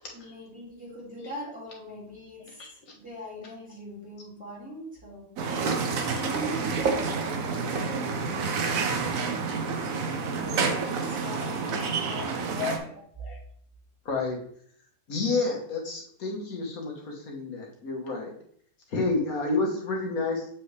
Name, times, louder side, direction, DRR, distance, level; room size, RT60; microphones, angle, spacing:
voice 1, 0.0-12.9, equal, 5° right, -6 dB, 2.5 m, -42 dB
voice 2, 2.6-2.9 6.0-6.2 12.2-13.4 14.1-14.4 15.1-18.3 18.9-20.5, left 3 dB, 60° left, -1 dB, 1.9 m, -30 dB
sound 1, 5.4-12.8, right 5 dB, 60° right, 1.1 m, -29 dB
7.4 x 4.3 x 3.3 m, 0.62 s
omnidirectional pair, 1.7 m